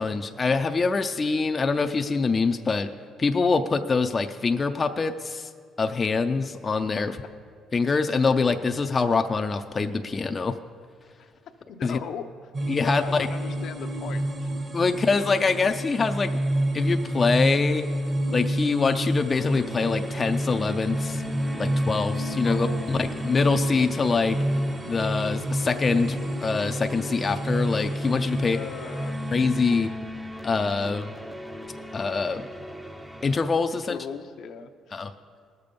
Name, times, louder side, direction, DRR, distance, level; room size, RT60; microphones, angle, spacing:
voice 1, 0.0-2.9 3.2-5.5 5.8-7.2 7.7-10.6 11.8-12.0 12.7-13.3 14.7-16.3 16.7-17.9 18.3-21.2 21.6-24.4 24.9-28.6 29.3-29.9 30.4-31.1 31.9-32.5 33.2-34.0 34.9-35.1, left 4 dB, 30° left, 6 dB, 0.5 m, -24 dB
voice 2, 11.7-12.5 13.0-14.5 22.4-23.2 28.5-29.2 33.7-35.0, left 7 dB, 70° left, 6 dB, 0.7 m, -39 dB
sound 1, 12.5-29.9, right 1 dB, 35° right, 1.2 m, -29 dB
sound 2, 19.4-33.4, left 1 dB, 10° right, 0.6 m, -38 dB
18.5 x 6.9 x 5.2 m, 2.1 s
cardioid pair, 100°, 0 cm